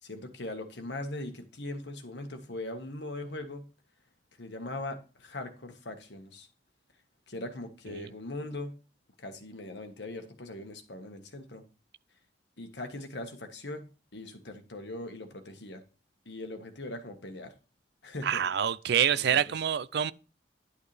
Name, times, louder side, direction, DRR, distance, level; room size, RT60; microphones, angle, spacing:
voice 1, 0.0-3.7 4.4-6.5 7.3-8.8 9.2-11.6 12.6-15.8 16.2-17.5 18.0-18.4 19.1-19.5, left 2 dB, 75° left, 1.5 m, -40 dB
voice 2, 18.2-20.1, right 9 dB, 65° right, 0.4 m, -26 dB
11.0 x 6.4 x 3.3 m
head